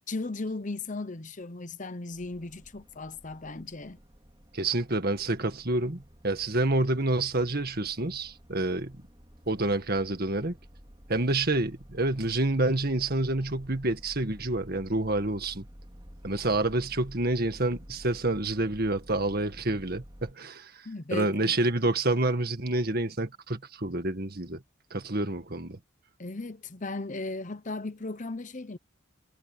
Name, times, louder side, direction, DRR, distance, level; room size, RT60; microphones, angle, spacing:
voice 1, 0.0-4.0 20.8-21.6 26.2-28.8, left 3 dB, 35° left, 0.9 m, -36 dB
sound 1, 2.1-20.3, equal, 20° right, 3.0 m, -51 dB
voice 2, 4.5-9.0 9.5-10.6 11.1-15.7 16.2-20.7 21.1-24.6 24.9-25.8, right 2 dB, 45° right, 1.8 m, -28 dB
head